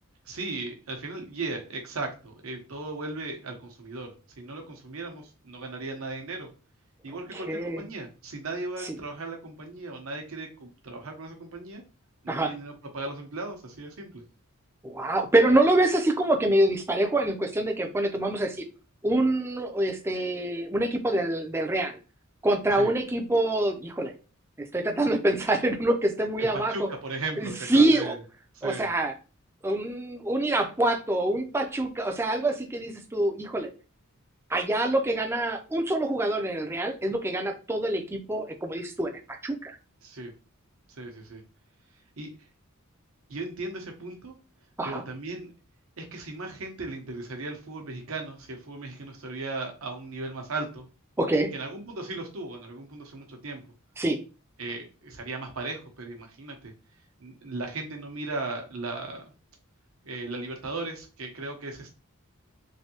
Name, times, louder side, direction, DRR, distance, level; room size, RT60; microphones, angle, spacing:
voice 1, 0.3-6.5 7.0-11.8 12.2-14.2 22.8-22.9 26.4-28.2 28.5-28.9 40.0-40.3 41.0-41.4 42.2-42.3 43.3-44.3 44.8-45.5 46.0-50.8 51.5-53.6 54.6-56.7 57.2-59.3 60.0-61.9, right 2 dB, 75° right, 3 dB, 0.9 m, -37 dB
voice 2, 7.3-7.8 8.8-8.9 12.3-12.5 14.8-18.6 19.0-22.0 22.4-24.1 24.6-26.9 27.4-28.2 28.6-29.1 29.6-33.7 34.5-39.8 44.8-45.0 51.2-51.5 54.0-54.2, right 1 dB, 10° right, 4 dB, 0.4 m, -25 dB
3.3 x 2.6 x 2.8 m, 0.34 s
head